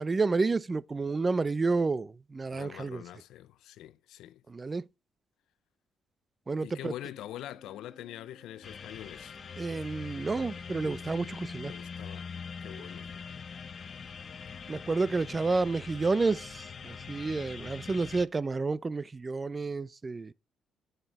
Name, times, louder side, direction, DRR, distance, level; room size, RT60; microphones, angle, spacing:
voice 1, 0.0-3.0 4.5-4.8 6.5-6.9 9.6-11.7 14.7-20.3, right 3 dB, 30° right, 0.5 m, -30 dB
voice 2, 2.5-4.4 6.6-9.4 11.6-12.3 12.6-13.1, left 13 dB, 85° left, 0.5 m, -44 dB
Bowed string instrument, 6.8-11.1, left 2 dB, 15° left, 2.5 m, -59 dB
sound 1, 8.6-18.3, left 6 dB, 45° left, 0.8 m, -43 dB
8.1 x 7.6 x 4.1 m
cardioid pair, 90°, 0 cm